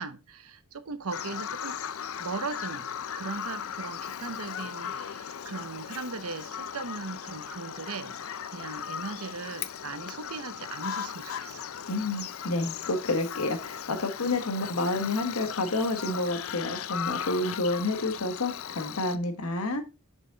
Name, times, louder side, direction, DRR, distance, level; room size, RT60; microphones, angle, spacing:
voice 1, 0.0-1.8 2.2-2.9 3.1-11.7, right 4 dB, 80° right, 0.8 m, -38 dB
Bird vocalization bird call bird song, 1.1-19.2, left 8 dB, 70° left, 0.5 m, -37 dB
voice 2, 11.9-19.8, left 2 dB, 85° left, 1.4 m, -29 dB
6.6 x 6.0 x 3.9 m
head